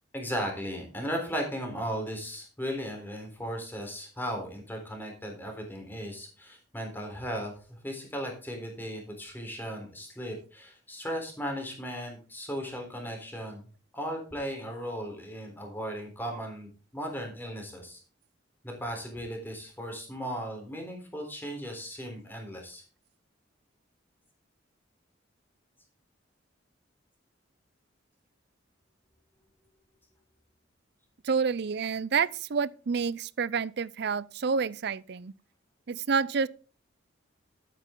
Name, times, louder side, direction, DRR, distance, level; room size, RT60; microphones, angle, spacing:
voice 1, 0.1-13.6 13.9-18.0 18.6-22.8, equal, 10° left, 3.7 m, -36 dB
voice 2, 31.2-35.3 35.9-36.5, right 5 dB, 55° right, 0.5 m, -28 dB
12.0 x 9.2 x 3.8 m
head